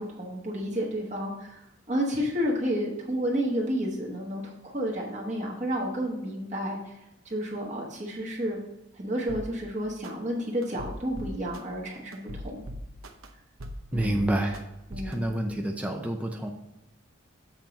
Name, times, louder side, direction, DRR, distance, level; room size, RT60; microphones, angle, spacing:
voice 1, 0.0-7.0 7.2-8.6 8.9-12.6 13.9-14.3 14.9-15.3, equal, 35° right, -2 dB, 1.2 m, -31 dB
sound 1, 9.3-9.5 10.0-10.1 10.6-11.6 12.1-13.3 13.6-14.6 14.9-15.1, equal, 80° right, 0.8 m, -38 dB
voice 2, 13.9-14.6 15.0-16.5, right 1 dB, 5° right, 2 dB, 0.5 m, -28 dB
7.5 x 4.4 x 5.2 m, 0.95 s
head